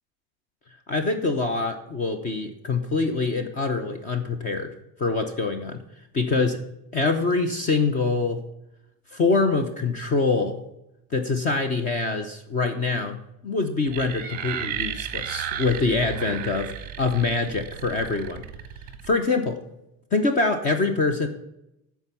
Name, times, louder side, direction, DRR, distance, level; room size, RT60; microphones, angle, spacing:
voice 1, 0.9-4.7 5.0-5.8 6.1-6.6 6.9-8.4 9.1-10.6 11.1-13.2 13.4-16.7 17.0-18.4 19.0-19.6 20.1-21.3, left 3 dB, 25° left, 7 dB, 0.6 m, -24 dB
sound 1, 13.9-19.2, right 9 dB, 30° right, 0.8 m, -34 dB
12.5 x 4.6 x 5.7 m, 0.86 s
cardioid pair, 180°, 31 cm